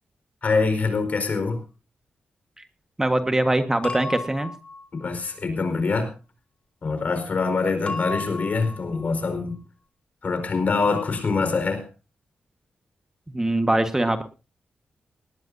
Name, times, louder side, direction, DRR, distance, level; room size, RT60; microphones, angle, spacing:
voice 1, 0.4-1.6 4.9-6.1 6.8-9.6 10.2-11.8, left 4 dB, 55° left, 8 dB, 4.6 m, -24 dB
voice 2, 3.0-4.5 13.3-14.2, right 1 dB, 15° right, 8 dB, 1.5 m, -22 dB
sound 1, 3.8-5.1 7.9-9.1, left 2 dB, 35° left, 2.9 m, -34 dB
19.5 x 18.0 x 2.7 m, 0.32 s
cardioid pair, 85°, 3 cm